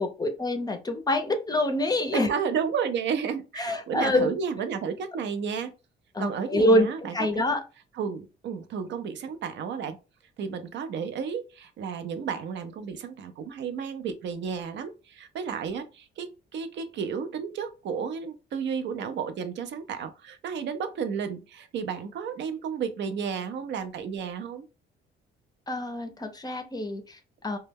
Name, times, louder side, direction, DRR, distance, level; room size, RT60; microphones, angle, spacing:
voice 1, 0.0-2.3 3.6-4.3 6.1-7.6 25.7-27.6, left 1 dB, 20° left, 0.5 m, -26 dB
voice 2, 2.1-5.7 6.2-7.4 8.0-10.0 10.4-24.7, right 6 dB, 65° right, 0.4 m, -32 dB
2.2 x 2.0 x 3.3 m
cardioid pair, 90°, 20 cm